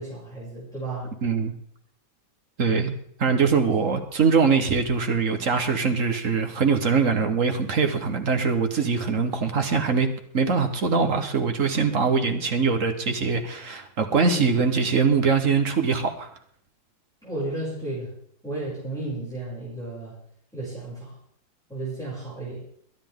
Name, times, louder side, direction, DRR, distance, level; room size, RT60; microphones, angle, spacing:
voice 1, 0.0-1.1 14.3-14.5 17.2-18.1 18.4-20.1 20.5-21.1 21.7-22.6, right 2 dB, ahead, -9 dB, 6.6 m, -33 dB
voice 2, 1.2-1.5 2.6-2.9 3.2-10.1 10.3-16.3, right 5 dB, 45° right, 6 dB, 1.4 m, -22 dB
23.0 x 10.0 x 3.7 m, 0.65 s
omnidirectional pair, 2.1 m